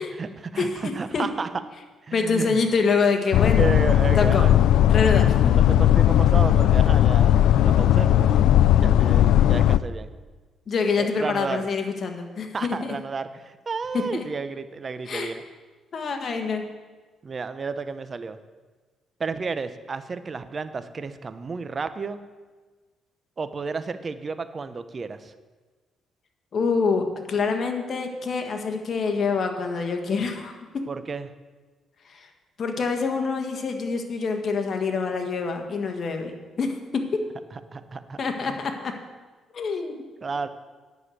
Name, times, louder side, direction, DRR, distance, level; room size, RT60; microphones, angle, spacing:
voice 1, 0.0-1.5 2.1-2.6 3.6-4.6 5.5-8.5 8.8-10.1 11.0-11.6 12.5-15.4 17.2-18.4 19.2-22.2 23.4-25.3 30.9-31.3 37.5-38.2 38.5-38.6 40.2-40.5, right 4 dB, 35° right, 11 dB, 0.7 m, -32 dB
voice 2, 2.1-3.7 4.2-4.4 4.9-5.5 10.7-12.9 14.1-14.2 15.0-15.3 15.9-16.6 26.5-30.6 32.1-32.3 32.6-37.0 38.2-38.9 39.5-40.0, left 4 dB, 50° left, 5 dB, 1.6 m, -26 dB
sound 1, 3.3-9.8, left 11 dB, 85° left, 0.3 m, -17 dB
10.0 x 6.4 x 8.3 m, 1.4 s
cardioid pair, 90°, 0 cm